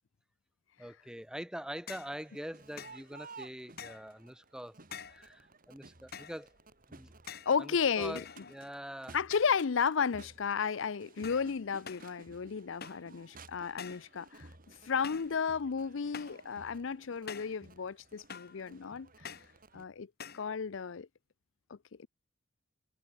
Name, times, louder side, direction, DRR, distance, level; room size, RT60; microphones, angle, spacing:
voice 1, 0.8-4.8 5.1-6.5 6.9-7.1 7.6-9.2, equal, 5° right, 3.2 m, -44 dB
sound 1, 1.9-2.2 2.8-3.0 3.8-4.1 4.9-5.3 6.1-6.5 7.3-7.6 8.2-8.8 9.3-9.7 10.0-10.5 11.2-11.5 11.9-12.1 12.8-13.1 13.8-14.1 15.0-15.4 16.1-16.5 17.3-17.6 18.3-18.6 19.2-19.6 20.2-20.5, left 7 dB, 50° left, 2.1 m, -47 dB
Crowd, 2.1-19.8, right 3 dB, 45° right, 3.0 m, -56 dB
voice 2, 7.5-8.2 9.1-14.5 14.8-19.3 19.7-20.1 20.3-21.1 21.7-22.1, left 6 dB, 65° left, 0.5 m, -33 dB
head